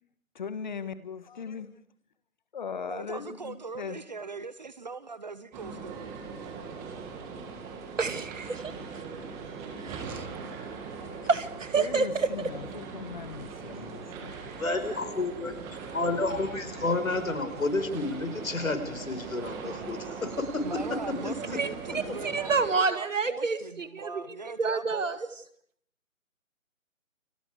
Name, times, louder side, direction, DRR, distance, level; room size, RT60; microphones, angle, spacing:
voice 1, 0.3-1.7 2.5-4.0 11.8-14.4, left 6 dB, 35° left, 1.6 m, -38 dB
voice 2, 2.9-6.2 20.6-25.3, right 4 dB, 30° right, 0.9 m, -40 dB
sound 1, 5.5-22.7, right 5 dB, 10° right, 1.5 m, -40 dB
voice 3, 8.0-9.0 9.8-10.3 11.3-12.3 21.6-25.2, right 4 dB, 65° right, 2.4 m, -29 dB
voice 4, 14.6-20.6 21.5-21.6, left 2 dB, 75° left, 5.3 m, -31 dB
30.0 x 25.0 x 5.0 m
figure-of-eight pair, 160°, 41 cm